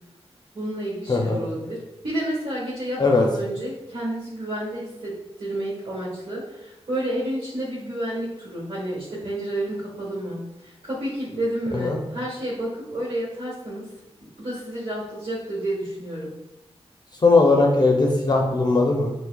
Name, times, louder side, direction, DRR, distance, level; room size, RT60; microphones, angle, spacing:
voice 1, 0.5-1.8 2.0-13.9 14.4-16.3, right 1 dB, 60° right, -8 dB, 1.3 m, -30 dB
voice 2, 1.1-1.4 3.0-3.2 11.7-12.0 17.2-19.1, left 3 dB, 40° left, 0 dB, 0.5 m, -19 dB
5.7 x 2.1 x 2.2 m, 0.93 s
wide cardioid pair, 70°, 11 cm